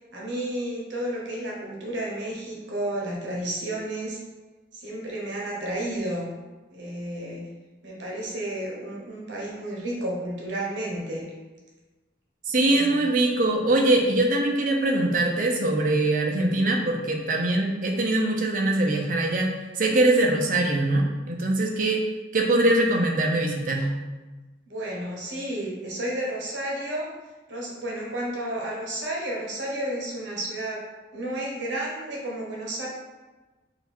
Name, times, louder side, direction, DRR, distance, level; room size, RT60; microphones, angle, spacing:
voice 1, 0.1-4.2 4.7-6.3 6.7-7.5 7.8-11.3 12.6-13.1 24.7-27.1 27.5-32.9, right 1 dB, 85° right, -3 dB, 1.0 m, -32 dB
voice 2, 12.5-19.5 19.8-22.0 22.3-23.9, right 2 dB, 45° right, 0 dB, 0.6 m, -22 dB
3.8 x 2.3 x 4.3 m, 1.2 s
head